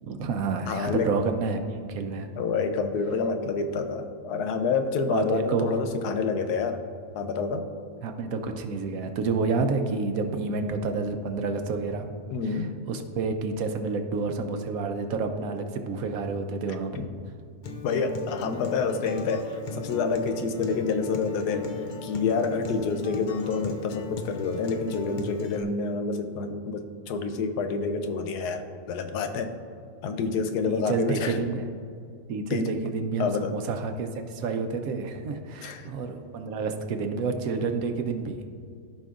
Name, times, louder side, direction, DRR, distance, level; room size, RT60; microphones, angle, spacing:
voice 1, 0.0-2.3 5.1-5.8 8.0-12.1 12.4-17.0 30.6-31.6 32.3-38.5, right 4 dB, 70° right, 6 dB, 1.0 m, -29 dB
voice 2, 0.7-1.1 2.4-6.8 7.1-7.7 12.3-12.7 17.0-17.1 17.8-21.7 22.0-29.5 30.0-31.4 32.5-32.8 33.2-33.5 35.6-35.9, left 4 dB, 85° left, 7 dB, 1.2 m, -28 dB
Acoustic guitar, 17.6-25.6, left 3 dB, 70° left, 0.4 m, -36 dB
14.5 x 5.3 x 2.5 m, 2.3 s
omnidirectional pair, 1.7 m